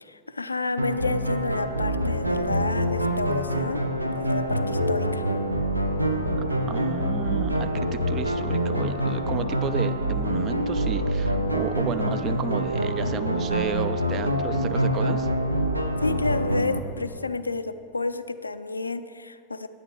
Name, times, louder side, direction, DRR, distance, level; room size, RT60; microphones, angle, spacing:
voice 1, 0.0-3.8 4.1-5.3 16.0-19.7, left 3 dB, 80° left, 12 dB, 0.3 m, -30 dB
sound 1, 0.8-16.8, equal, 90° right, 0.6 m, -26 dB
voice 2, 6.7-15.3, right 8 dB, 30° right, 11 dB, 0.4 m, -33 dB
9.5 x 8.9 x 4.6 m, 2.7 s
figure-of-eight pair, 90°, 0 cm